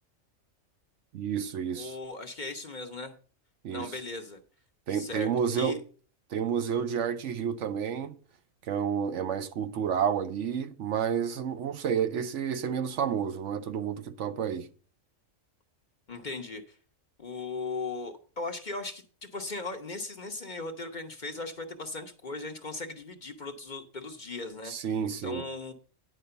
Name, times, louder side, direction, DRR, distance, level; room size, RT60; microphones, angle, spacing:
voice 1, 1.1-2.0 3.6-4.0 4.9-5.8 6.3-8.2 8.6-14.7 24.6-25.4, right 7 dB, 70° right, 1.0 m, -30 dB
voice 2, 1.7-3.1 3.7-4.4 4.9-5.8 16.1-16.6 17.2-24.7 25.2-25.7, left 3 dB, 40° left, 1.0 m, -38 dB
10.0 x 4.9 x 6.7 m
omnidirectional pair, 1.4 m